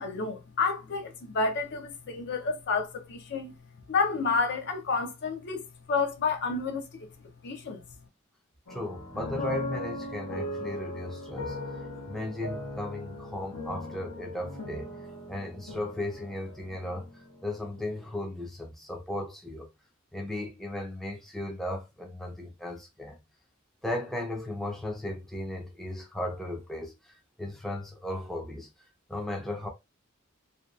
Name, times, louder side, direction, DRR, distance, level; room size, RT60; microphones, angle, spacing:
voice 1, 0.0-3.5 3.9-5.6 5.9-7.1 7.4-7.8, left 4 dB, 55° left, 0.5 m, -30 dB
sound 1, 8.7-18.0, left 1 dB, 85° left, 0.8 m, -39 dB
voice 2, 8.7-11.6 12.1-14.9 15.3-17.1 17.4-19.7 20.1-23.2 23.8-28.7 29.1-29.7, left 1 dB, ahead, 0.5 m, -36 dB
2.5 x 2.2 x 2.4 m
head